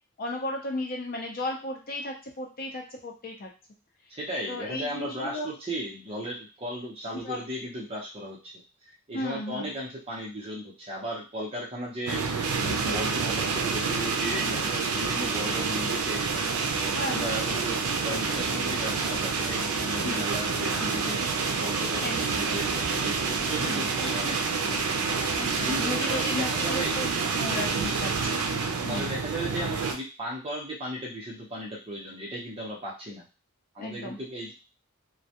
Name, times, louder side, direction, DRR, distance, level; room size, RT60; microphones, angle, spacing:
voice 1, 0.2-3.5 4.5-5.5 7.2-7.4 9.1-9.7 14.4-14.6 16.9-17.5 20.0-20.2 22.0-22.2 23.6-23.9 25.3-28.1 28.8-29.1 33.8-34.2, left 1 dB, 40° left, 1 dB, 0.5 m, -34 dB
voice 2, 4.1-8.6 9.1-12.2 12.6-16.2 17.1-17.8 18.0-21.2 21.6-25.0 25.6-26.9 27.7-27.9 28.9-33.2 33.7-34.5, right 1 dB, 25° right, -4 dB, 0.7 m, -36 dB
sound 1, 12.1-29.9, right 4 dB, 90° right, 0.4 m, -28 dB
2.2 x 2.2 x 2.8 m, 0.32 s
head